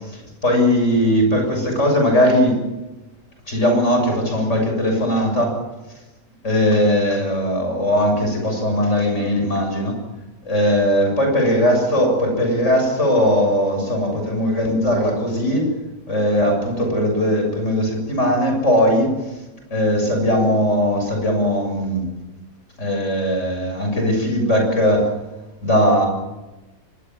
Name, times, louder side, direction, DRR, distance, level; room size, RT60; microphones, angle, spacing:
voice 1, 0.4-2.6 3.5-5.6 6.4-10.0 10.4-15.7 16.1-19.1 19.7-22.1 22.8-25.1 25.6-26.1, equal, 55° left, 2 dB, 7.6 m, -19 dB
24.5 x 21.0 x 7.5 m, 1.1 s
omnidirectional pair, 1.5 m